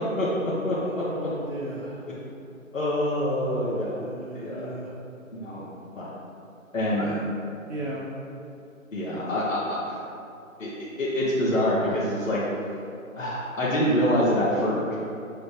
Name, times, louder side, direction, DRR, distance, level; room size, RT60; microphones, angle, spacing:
voice 1, 0.2-1.3 2.7-4.0 4.3-4.7 5.3-5.7 5.9-6.1 6.7-7.0 8.9-10.0 10.6-10.7 11.0-12.4 13.2-14.9, equal, 70° left, -8 dB, 1.4 m, -26 dB
voice 2, 0.8-2.0 3.7-4.9 7.0-7.2 7.7-8.0, right 2 dB, 60° right, -4 dB, 0.9 m, -36 dB
8.0 x 2.7 x 5.2 m, 2.6 s
figure-of-eight pair, 155°, 41 cm